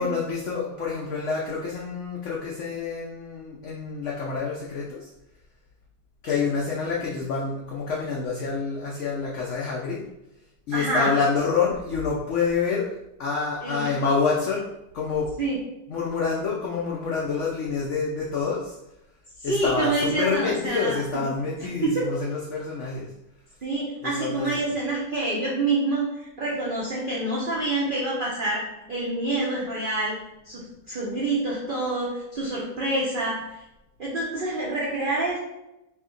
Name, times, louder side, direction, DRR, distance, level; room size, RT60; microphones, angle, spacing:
voice 1, 0.0-5.1 6.2-10.0 10.7-12.9 13.2-14.7 14.9-15.3 15.9-18.8 19.4-23.1 24.0-24.5, left 5 dB, 80° left, -3 dB, 0.6 m, -27 dB
voice 2, 10.7-11.1 13.6-13.9 15.4-15.6 19.4-21.2 21.6-22.0 23.6-28.6 28.9-30.1 30.5-33.4 34.0-35.4, right 2 dB, 75° right, -5 dB, 0.4 m, -27 dB
2.8 x 2.8 x 3.7 m, 0.90 s
omnidirectional pair, 1.8 m